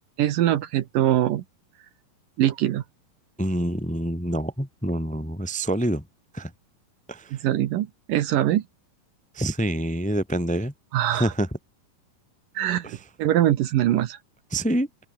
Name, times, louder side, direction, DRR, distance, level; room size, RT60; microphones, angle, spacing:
voice 1, 0.2-1.4 2.4-2.8 7.3-8.6 10.9-11.3 12.6-14.2, right 12 dB, 70° right, 2.6 m, -23 dB
voice 2, 3.4-6.0 6.3-6.5 7.1-7.4 9.3-10.7 11.1-11.5 12.8-13.0 14.5-14.9, right 1 dB, 5° left, 1.4 m, -26 dB
omnidirectional pair, 4.3 m